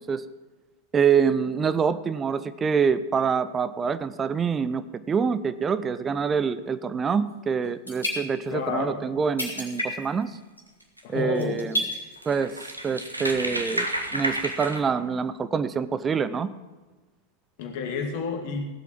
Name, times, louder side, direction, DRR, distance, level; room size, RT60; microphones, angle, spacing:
voice 1, 0.9-10.4 11.1-11.7 12.2-12.6 12.8-13.9 14.1-16.5, right 6 dB, 20° right, 14 dB, 0.6 m, -25 dB
sound 1, 7.3-7.4 7.6-8.7 9.0-9.1 9.4-10.2 10.6-10.8 11.3-12.1 12.7-12.8, equal, 80° left, 3.4 m, -30 dB
voice 2, 8.5-9.0 11.0-11.6 17.6-18.7, left 5 dB, 50° left, 3 dB, 2.5 m, -30 dB
sound 2, 10.8-11.0 11.6-11.7 12.0-14.8, right 1 dB, 85° right, 1.4 m, -30 dB
16.5 x 8.3 x 6.0 m, 1.3 s
figure-of-eight pair, 90°, 0 cm